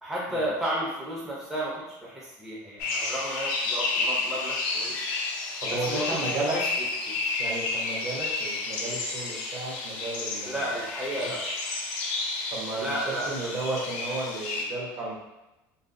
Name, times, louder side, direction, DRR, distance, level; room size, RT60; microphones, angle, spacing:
voice 1, 0.0-5.0 5.7-6.6 7.1-7.2 10.4-11.5 12.8-13.6, equal, 5° right, -6 dB, 0.5 m, -33 dB
sound 1, 2.8-14.6, left 3 dB, 85° left, 0.5 m, -31 dB
voice 2, 5.6-6.6 7.4-10.7 11.2-11.3 12.5-15.2, right 2 dB, 45° right, -3 dB, 0.7 m, -33 dB
2.6 x 2.4 x 2.5 m, 0.97 s
cardioid pair, 155°, 8 cm